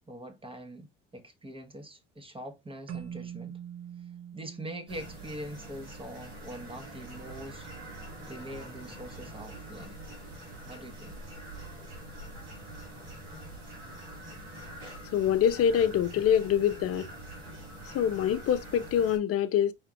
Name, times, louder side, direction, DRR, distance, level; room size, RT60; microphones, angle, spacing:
voice 1, 0.1-3.5 4.3-7.7 8.2-10.0 10.6-11.2, right 1 dB, 15° right, 1.3 m, -43 dB
Keyboard (musical), 2.9-6.1, right 9 dB, 55° right, 1.1 m, -44 dB
sound 1, 4.9-19.2, right 1 dB, 90° right, 2.6 m, -44 dB
voice 2, 15.1-17.1 17.9-19.7, left 9 dB, 50° left, 0.6 m, -25 dB
4.7 x 3.5 x 2.9 m
supercardioid pair, 80°, 31 cm